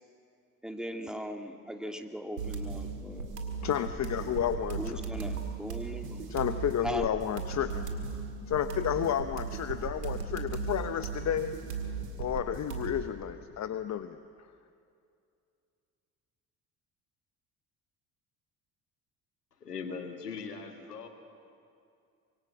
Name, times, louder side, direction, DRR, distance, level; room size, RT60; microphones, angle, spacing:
voice 1, 0.6-3.3 4.8-6.3 6.8-7.1, equal, ahead, 4 dB, 2.2 m, -39 dB
sound 1, 2.4-13.0, right 5 dB, 85° right, 2.2 m, -37 dB
voice 2, 3.6-5.0 6.3-7.9 8.5-11.6 12.2-14.2, left 9 dB, 35° left, 10 dB, 0.9 m, -31 dB
voice 3, 19.5-21.1, left 5 dB, 90° left, 4 dB, 2.1 m, -40 dB
25.0 x 23.0 x 7.5 m, 2.5 s
figure-of-eight pair, 55°, 46 cm